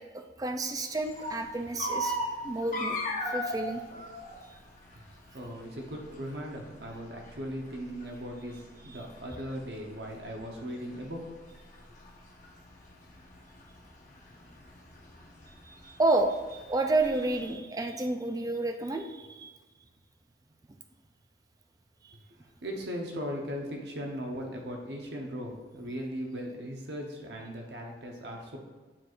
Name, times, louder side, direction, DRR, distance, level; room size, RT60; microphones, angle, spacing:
voice 1, 0.1-2.2 2.4-3.0 3.3-3.8 15.6-19.5, right 2 dB, 20° right, 5 dB, 0.4 m, -30 dB
sound 1, 1.0-17.5, equal, 45° left, 1.0 m, -39 dB
voice 2, 5.3-11.2 22.3-28.6, equal, 70° right, 1 dB, 0.9 m, -38 dB
8.8 x 4.6 x 2.5 m, 1.3 s
head